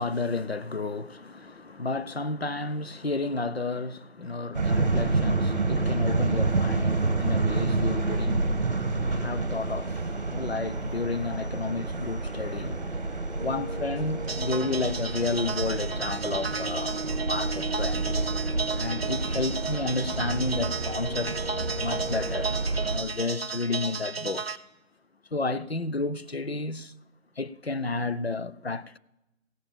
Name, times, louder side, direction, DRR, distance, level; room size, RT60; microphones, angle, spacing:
voice 1, 0.0-12.9 13.4-17.0 17.2-18.1 18.7-21.4 21.8-22.6 22.9-24.6 25.3-26.9 27.4-29.0, left 3 dB, 50° left, 0.4 m, -32 dB
sound 1, 4.5-23.0, right 3 dB, 30° right, 1.4 m, -29 dB
sound 2, 13.4-22.5, right 1 dB, ahead, 2.8 m, -39 dB
sound 3, 14.3-24.6, right 4 dB, 50° right, 0.6 m, -34 dB
16.0 x 7.1 x 7.2 m
figure-of-eight pair, 175°, 41 cm